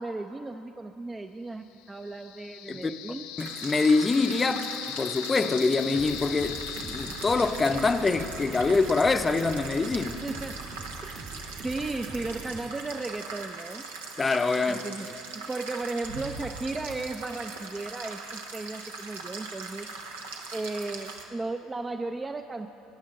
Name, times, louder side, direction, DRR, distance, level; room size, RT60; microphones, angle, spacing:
voice 1, 0.0-3.3 10.2-10.6 11.0-11.2 11.6-13.9 14.7-19.9 20.5-22.7, right 2 dB, 20° right, 0.5 m, -35 dB
sound 1, 1.8-8.8, left 12 dB, 75° left, 0.4 m, -39 dB
voice 2, 2.7-10.2 14.2-14.8, left 3 dB, 25° left, 0.6 m, -25 dB
sound 2, 3.4-21.2, right 4 dB, 85° right, 1.0 m, -41 dB
sound 3, 5.9-12.6, right 3 dB, 40° right, 1.3 m, -43 dB
17.5 x 10.5 x 3.8 m
hypercardioid pair, 70°, 0 cm